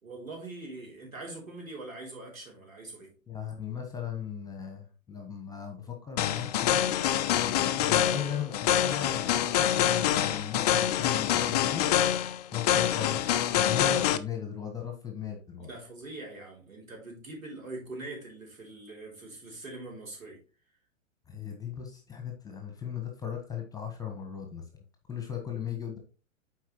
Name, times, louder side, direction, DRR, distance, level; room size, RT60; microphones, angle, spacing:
voice 1, 0.0-3.1 15.6-20.4, right 2 dB, 80° right, 3.4 m, -43 dB
voice 2, 3.3-6.9 7.3-11.9 12.5-15.7 21.3-24.6 25.1-26.0, left 8 dB, 10° left, 1.3 m, -37 dB
sound 1, 6.2-14.2, left 11 dB, 30° left, 0.4 m, -26 dB
7.6 x 4.8 x 3.1 m
figure-of-eight pair, 110°, 40 cm